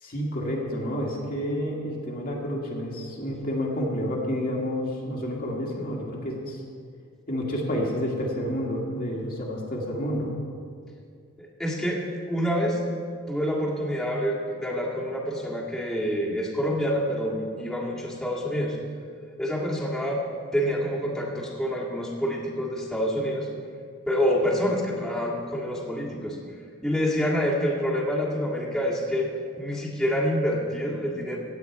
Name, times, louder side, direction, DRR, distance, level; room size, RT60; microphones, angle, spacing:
voice 1, 0.0-6.6 7.3-10.3, equal, 45° left, -2 dB, 1.9 m, -29 dB
voice 2, 11.4-12.8 13.3-18.8 19.4-20.2 20.5-23.5 24.1-26.4 26.8-29.3 29.6-31.4, equal, ahead, -6 dB, 1.8 m, -27 dB
16.5 x 8.2 x 4.7 m, 2.2 s
head